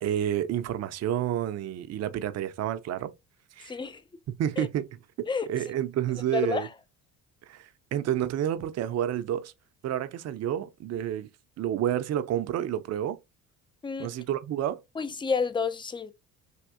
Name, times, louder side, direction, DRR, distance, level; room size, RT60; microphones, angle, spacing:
voice 1, 0.0-3.1 3.6-3.8 4.3-4.9 5.5-6.7 7.5-9.5 9.8-11.3 11.6-13.2 14.0-14.8, right 11 dB, 50° right, 0.5 m, -29 dB
voice 2, 3.7-4.0 4.6-4.7 5.3-5.5 6.3-6.7 13.8-14.1 15.0-16.1, left 5 dB, 15° left, 0.3 m, -29 dB
3.5 x 2.6 x 2.4 m
supercardioid pair, 75°, 34 cm